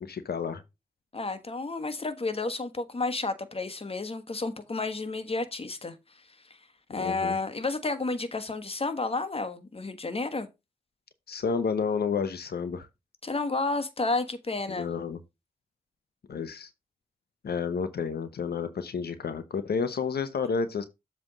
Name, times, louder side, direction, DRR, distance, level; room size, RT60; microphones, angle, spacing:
voice 1, 0.0-0.6 6.9-7.4 11.3-12.9 14.7-15.2 16.3-16.7 17.4-20.8, left 5 dB, 85° left, 0.9 m, -30 dB
voice 2, 1.1-6.6 6.9-10.5 13.2-14.9, left 3 dB, 35° left, 1.3 m, -31 dB
7.7 x 3.4 x 6.0 m
cardioid pair, 65°, 16 cm